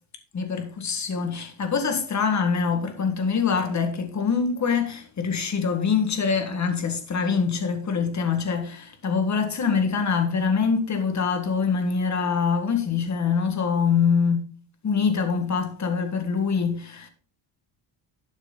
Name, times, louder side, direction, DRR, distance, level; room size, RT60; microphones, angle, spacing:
voice 1, 0.3-14.4 14.8-17.1, left 5 dB, 35° left, 1.9 m, -24 dB
11.5 x 6.4 x 4.0 m
cardioid pair, 130°, 47 cm